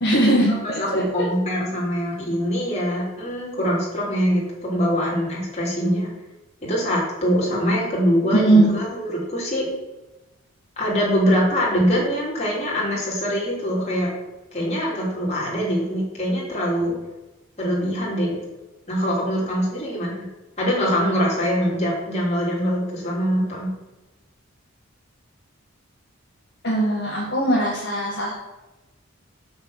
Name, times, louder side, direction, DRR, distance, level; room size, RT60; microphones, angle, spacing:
voice 1, 0.0-1.0 8.3-8.7 26.6-28.3, right 1 dB, 50° left, -5 dB, 1.6 m, -19 dB
voice 2, 0.8-6.1 6.6-9.7 10.8-14.1 14.5-16.9 17.6-18.4 18.9-20.3 20.6-23.7, equal, 30° left, -5 dB, 3.1 m, -23 dB
6.4 x 6.4 x 6.3 m, 1.1 s
head